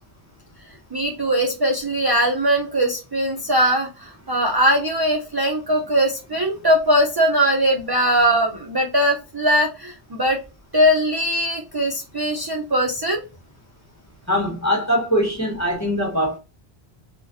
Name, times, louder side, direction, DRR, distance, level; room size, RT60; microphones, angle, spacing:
voice 1, 0.9-10.4 10.7-13.2, equal, 35° right, 0.4 m, -20 dB
voice 2, 14.3-16.4, equal, 15° left, 1.0 m, -22 dB
3.9 x 2.2 x 2.5 m
omnidirectional pair, 1.1 m